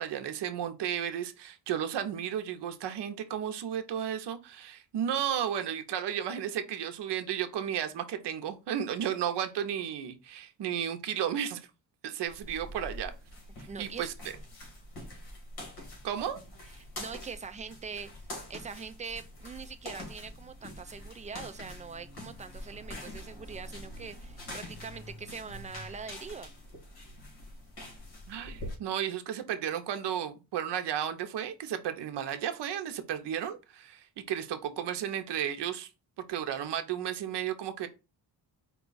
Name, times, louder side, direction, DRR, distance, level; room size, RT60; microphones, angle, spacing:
voice 1, 0.0-11.7 12.0-13.1 13.8-14.1 16.0-16.4 28.3-35.9 36.3-37.9, right 9 dB, 75° right, 0.7 m, -33 dB
sound 1, 12.3-28.8, left 1 dB, 65° left, 1.8 m, -45 dB
voice 2, 13.7-14.1 16.8-26.5, right 5 dB, 20° right, 0.3 m, -43 dB
4.7 x 2.3 x 3.9 m
cardioid pair, 115°, 42 cm